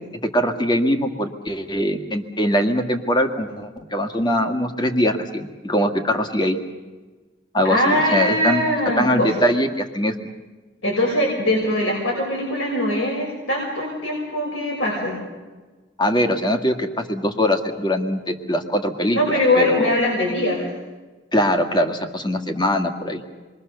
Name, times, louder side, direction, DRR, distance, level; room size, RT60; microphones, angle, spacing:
voice 1, 0.3-6.6 7.5-8.6 9.0-10.1 16.0-19.9 21.3-23.2, equal, 20° left, 5 dB, 1.9 m, -22 dB
voice 2, 7.7-9.4 10.8-15.2 19.1-20.7, left 1 dB, 70° left, -3 dB, 6.5 m, -21 dB
28.5 x 23.0 x 6.9 m, 1.3 s
head